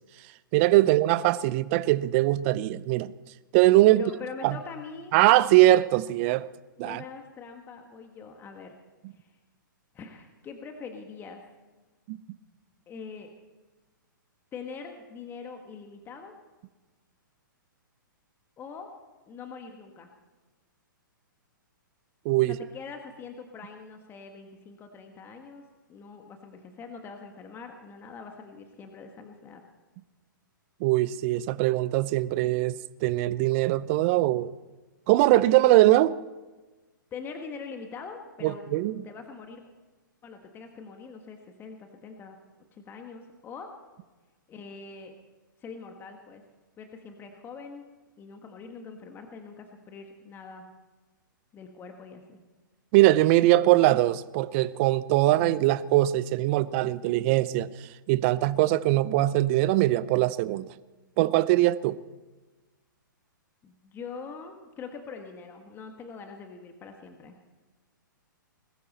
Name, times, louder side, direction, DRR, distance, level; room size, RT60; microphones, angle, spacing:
voice 1, 0.5-3.1 3.5-4.0 4.4-4.6 5.1-6.5 6.8-7.0 12.1-12.2 22.2-22.5 30.8-34.5 35.1-36.2 38.4-39.0 52.9-57.7 58.1-60.7 61.2-62.0, right 16 dB, 35° right, 17 dB, 0.6 m, -22 dB
voice 2, 3.9-5.2 6.8-8.7 9.1-9.3 9.9-11.4 12.9-13.3 14.5-16.3 18.6-18.9 19.3-20.1 22.5-25.6 25.9-29.6 37.1-39.6 40.2-42.4 42.7-43.7 44.5-45.1 45.6-46.4 46.8-47.8 48.2-50.6 51.5-52.4 63.6-67.4, left 5 dB, 20° left, 4 dB, 1.5 m, -43 dB
21.0 x 14.0 x 4.2 m, 1.2 s
hypercardioid pair, 120°, 11 cm